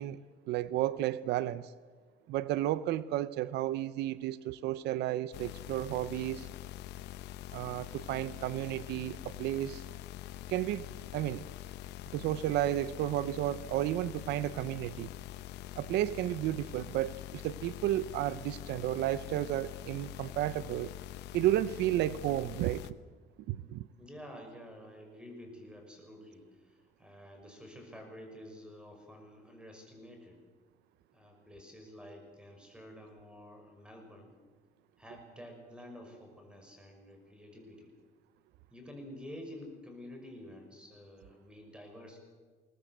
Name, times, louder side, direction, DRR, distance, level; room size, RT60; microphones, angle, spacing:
voice 1, 0.0-1.7 2.3-6.5 7.5-9.8 10.5-11.4 12.1-15.1 15.8-20.9 21.3-22.8 23.5-23.9, right 14 dB, 80° right, 17 dB, 0.6 m, -32 dB
sound 1, 5.3-22.9, left 13 dB, 85° left, 0.8 m, -45 dB
voice 2, 24.0-30.4 31.1-34.3 35.0-37.9 38.7-42.2, equal, 5° right, 3 dB, 6.0 m, -50 dB
21.5 x 19.0 x 7.9 m, 1.5 s
cardioid pair, 110°, 17 cm